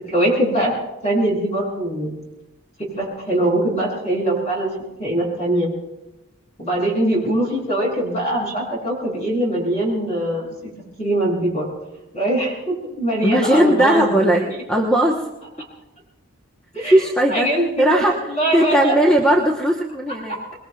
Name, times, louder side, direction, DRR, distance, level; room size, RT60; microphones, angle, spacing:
voice 1, 0.1-0.7 1.0-2.1 2.9-4.7 5.0-5.7 6.6-10.5 11.0-11.7 12.1-14.4 16.7-17.0 17.3-18.0 18.3-19.0 20.3-20.4, right 1 dB, 30° left, -3 dB, 6.9 m, -22 dB
voice 2, 13.2-15.2 16.8-18.2 18.5-20.4, right 1 dB, 5° left, -1 dB, 1.0 m, -18 dB
26.5 x 21.5 x 2.4 m, 1.0 s
head